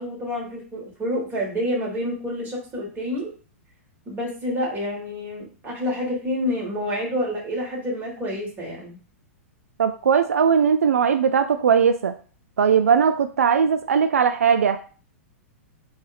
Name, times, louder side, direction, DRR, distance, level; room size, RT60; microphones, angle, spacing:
voice 1, 0.0-3.3 4.1-9.0, left 1 dB, 25° right, -2 dB, 1.9 m, -28 dB
voice 2, 9.8-12.1 12.6-14.8, right 7 dB, 85° right, 8 dB, 0.3 m, -19 dB
3.6 x 2.6 x 3.4 m, 0.39 s
hypercardioid pair, 110°, 8 cm